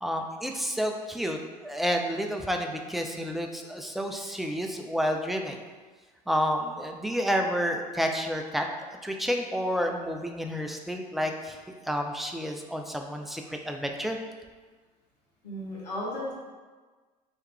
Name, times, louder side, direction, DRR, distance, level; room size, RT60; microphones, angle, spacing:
voice 1, 0.0-5.6 6.3-8.6 9.0-11.6 11.9-14.2, equal, ahead, 3 dB, 0.3 m, -30 dB
voice 2, 15.4-16.3, left 1 dB, 80° left, -5 dB, 1.0 m, -34 dB
3.1 x 2.9 x 3.2 m, 1.4 s
figure-of-eight pair, 60°, 21 cm